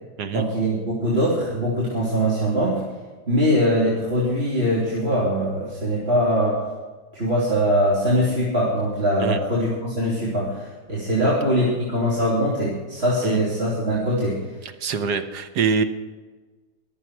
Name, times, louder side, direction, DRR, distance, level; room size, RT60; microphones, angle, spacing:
voice 1, 0.3-2.8 3.3-6.6 7.1-14.4, equal, 40° right, -8 dB, 3.5 m, -22 dB
voice 2, 14.6-15.8, right 5 dB, 85° right, 8 dB, 1.6 m, -25 dB
22.5 x 8.3 x 4.6 m, 1.3 s
omnidirectional pair, 1.7 m